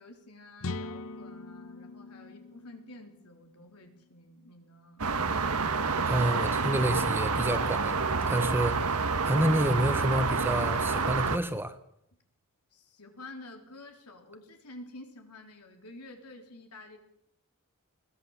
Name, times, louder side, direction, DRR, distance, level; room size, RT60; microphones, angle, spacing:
voice 1, 0.0-5.0 12.7-17.0, left 2 dB, 90° left, 4 dB, 3.8 m, -49 dB
sound 1, 0.6-4.4, left 3 dB, 65° left, 0.9 m, -42 dB
sound 2, 5.0-11.4, right 4 dB, 80° right, 1.4 m, -28 dB
voice 2, 6.1-8.8 9.2-11.8, right 1 dB, 10° right, 10 dB, 1.2 m, -28 dB
21.5 x 17.5 x 7.4 m, 0.75 s
head